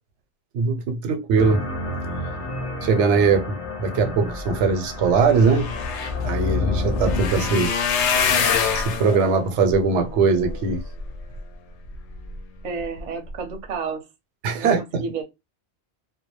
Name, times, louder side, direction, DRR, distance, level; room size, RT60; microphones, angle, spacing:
voice 1, 0.5-1.6 2.8-5.7 6.2-7.8 8.7-10.8 14.4-15.0, right 5 dB, 85° right, 0.9 m, -21 dB
sound 1, 1.4-7.7, left 2 dB, 40° left, 0.6 m, -29 dB
sound 2, 5.0-11.4 11.9-12.4 12.8-13.0 13.3-13.4, left 6 dB, 90° left, 0.9 m, -26 dB
voice 2, 12.6-14.1 14.5-15.2, right 5 dB, 45° right, 0.6 m, -31 dB
2.2 x 2.1 x 2.9 m
omnidirectional pair, 1.2 m